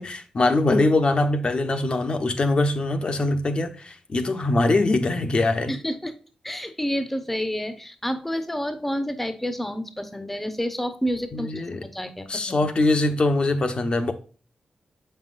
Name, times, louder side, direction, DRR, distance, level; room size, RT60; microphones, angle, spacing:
voice 1, 0.0-5.7 11.3-11.8 12.3-14.1, left 2 dB, 45° left, 0.9 m, -22 dB
voice 2, 5.7-6.1 6.4-11.5 11.8-12.6, equal, 10° left, 0.9 m, -29 dB
7.4 x 5.6 x 2.5 m
cardioid pair, 90°, 2 cm